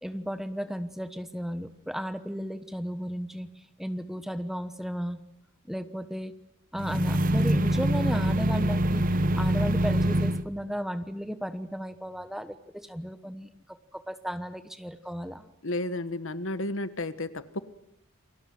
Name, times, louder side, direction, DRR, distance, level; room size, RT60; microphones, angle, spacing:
voice 1, 0.0-5.2 5.7-6.3 6.7-9.0 9.4-13.5 13.9-15.5, equal, ahead, 11 dB, 1.1 m, -34 dB
sound 1, 6.8-10.4, right 1 dB, 40° right, 1.1 m, -24 dB
voice 2, 15.6-17.6, left 2 dB, 70° left, 12 dB, 1.4 m, -32 dB
29.0 x 22.0 x 7.8 m, 0.79 s
head